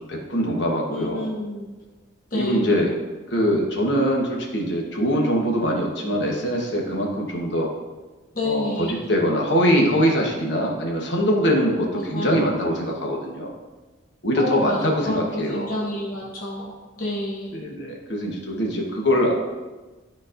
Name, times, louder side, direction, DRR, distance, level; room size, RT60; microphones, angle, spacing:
voice 1, 0.1-1.3 2.3-2.9 3.3-7.7 8.4-13.5 14.2-15.8 17.5-19.3, equal, 60° left, -1 dB, 1.2 m, -23 dB
voice 2, 0.9-1.7 2.3-2.9 8.3-9.1 11.9-12.5 14.4-17.5, left 1 dB, 40° left, -5 dB, 1.0 m, -29 dB
12.0 x 4.2 x 2.6 m, 1.2 s
head